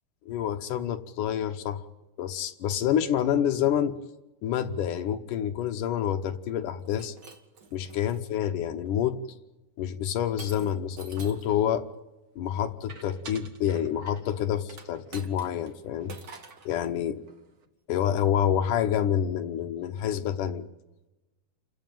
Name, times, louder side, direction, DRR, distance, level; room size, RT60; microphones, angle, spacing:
voice 1, 0.3-1.8 2.2-4.0 4.4-7.1 7.7-9.2 9.8-11.8 12.4-16.1 16.7-17.2 17.9-20.6, left 9 dB, 70° left, 7 dB, 2.3 m, -28 dB
Shatter, 6.8-8.2 8.9-9.2 10.4-11.5 14.7-15.7 16.1-16.7, right 4 dB, 40° right, 1.6 m, -47 dB
sound 1, 11.2-11.7 12.9-14.4 14.7-16.4 16.7-16.9 17.2-17.6, right 4 dB, 75° right, 0.8 m, -50 dB
29.0 x 15.0 x 9.2 m, 1.1 s
omnidirectional pair, 4.3 m